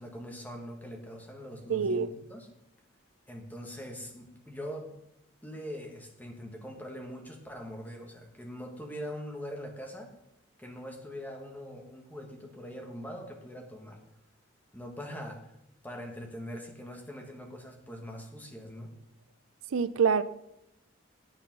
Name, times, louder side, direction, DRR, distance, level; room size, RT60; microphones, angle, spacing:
voice 1, 0.0-2.5 3.3-5.0 5.4-10.1 10.6-14.0 14.7-15.5 15.8-18.9, equal, 10° left, 1 dB, 1.6 m, -42 dB
voice 2, 1.7-2.1 19.7-20.2, right 6 dB, 80° right, 15 dB, 0.4 m, -25 dB
9.0 x 8.4 x 5.4 m, 0.81 s
head